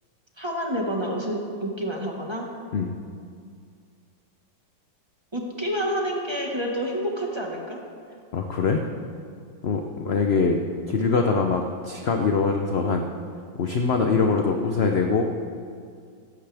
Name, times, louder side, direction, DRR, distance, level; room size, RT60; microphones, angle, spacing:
voice 1, 0.4-2.5 5.3-7.8, equal, 15° right, -1 dB, 1.5 m, -28 dB
voice 2, 8.3-8.8 9.6-10.6 10.9-13.1 13.6-15.2, left 4 dB, 60° left, 4 dB, 0.6 m, -23 dB
15.5 x 14.5 x 3.5 m, 2.2 s
omnidirectional pair, 2.1 m